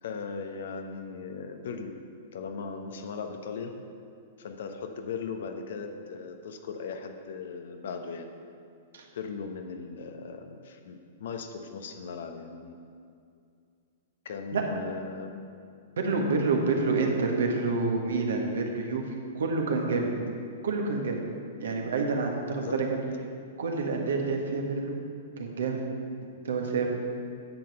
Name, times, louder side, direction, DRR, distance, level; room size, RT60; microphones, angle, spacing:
voice 1, 0.0-1.9 2.3-3.8 4.4-8.3 9.1-12.7 14.2-15.4 22.6-22.9, left 5 dB, 65° left, 6 dB, 1.0 m, -38 dB
voice 2, 16.0-20.1 20.6-21.2 21.6-22.9 23.6-25.0 25.4-25.8 26.4-26.9, right 3 dB, 70° right, 1 dB, 1.6 m, -28 dB
10.0 x 7.6 x 5.4 m, 2.4 s
figure-of-eight pair, 110°, 0 cm